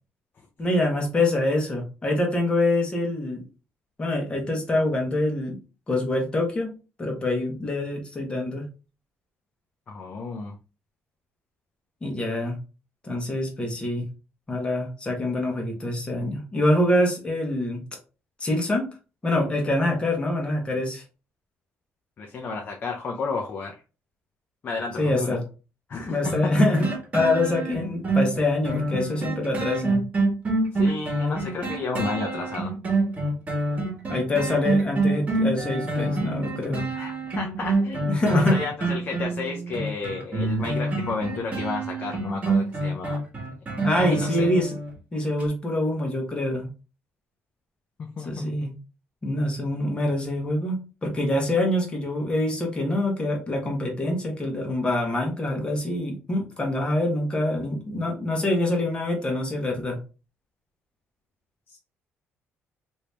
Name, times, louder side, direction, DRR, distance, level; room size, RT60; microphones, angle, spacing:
voice 1, 0.6-3.4 4.0-5.6 5.9-6.7 7.0-8.7 12.0-12.5 13.0-14.0 14.5-17.8 18.4-18.9 19.2-21.0 25.0-25.4 26.1-26.9 27.1-30.0 34.1-36.9 38.1-38.6 43.8-44.8 45.1-46.7 48.2-48.7 49.2-60.0, left 1 dB, 20° left, 1 dB, 1.2 m, -25 dB
voice 2, 9.9-10.5 22.2-23.7 24.6-25.4 25.9-26.3 30.7-32.7 36.9-43.2 44.0-44.5 48.2-48.7 61.7-61.8, left 4 dB, 40° left, 1 dB, 0.6 m, -32 dB
sound 1, 26.2-44.9 45.4-45.5, right 2 dB, 30° right, 1.5 m, -26 dB
3.0 x 2.7 x 3.3 m, 0.33 s
cardioid pair, 120°, 5 cm